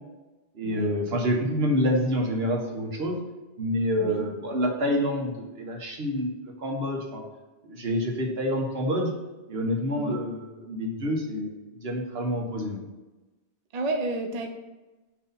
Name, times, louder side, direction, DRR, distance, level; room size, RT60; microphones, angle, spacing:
voice 1, 0.5-3.2 3.6-7.2 7.7-9.1 9.5-10.4 10.6-12.8, equal, 70° right, 0 dB, 1.3 m, -27 dB
voice 2, 13.7-14.5, right 2 dB, 45° right, 4 dB, 0.6 m, -31 dB
6.2 x 2.8 x 5.5 m, 1.1 s
omnidirectional pair, 1.1 m